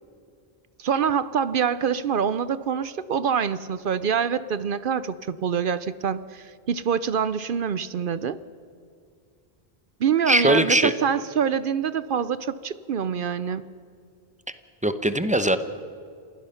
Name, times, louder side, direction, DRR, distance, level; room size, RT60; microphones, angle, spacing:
voice 1, 0.8-8.4 10.0-13.7, right 7 dB, 60° right, 16 dB, 0.7 m, -25 dB
voice 2, 10.3-10.9 14.8-15.6, right 1 dB, 10° right, 11 dB, 0.8 m, -20 dB
28.0 x 17.0 x 5.7 m, 2.4 s
omnidirectional pair, 1.1 m